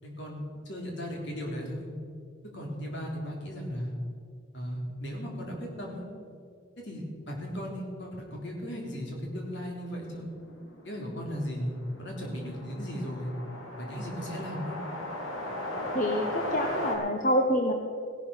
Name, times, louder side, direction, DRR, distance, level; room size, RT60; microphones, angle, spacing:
voice 1, 0.0-1.9 2.5-3.9 4.5-6.1 6.8-10.3 10.8-13.3 13.8-14.8, equal, 55° left, -1 dB, 3.4 m, -36 dB
sound 1, 9.5-9.6 9.8-9.9 10.2-17.0, left 1 dB, 80° left, 3.0 m, -37 dB
voice 2, 15.9-17.7, equal, 40° left, 3 dB, 1.0 m, -27 dB
16.5 x 11.5 x 5.7 m, 2.2 s
head